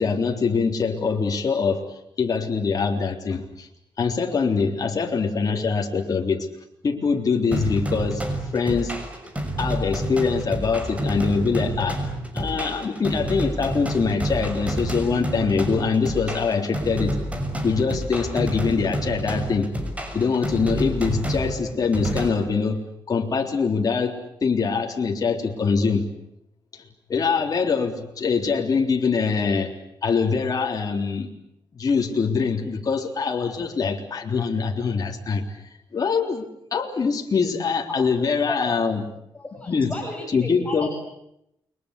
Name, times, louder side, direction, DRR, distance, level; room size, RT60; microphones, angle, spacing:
voice 1, 0.0-3.7 4.0-6.5 6.8-8.2 8.5-8.9 9.6-12.0 12.3-17.2 17.6-19.7 20.1-26.1 26.7-26.8 27.1-29.7 30.0-31.3 31.7-36.4 36.7-39.0 39.7-40.0 40.3-40.9, left 5 dB, 45° left, 2 dB, 3.7 m, -23 dB
sound 1, 7.5-22.3, right 1 dB, 15° right, 6.3 m, -29 dB
voice 2, 39.4-40.9, left 1 dB, 15° left, 0 dB, 6.9 m, -33 dB
29.5 x 23.5 x 8.5 m, 0.78 s
cardioid pair, 105°, 9 cm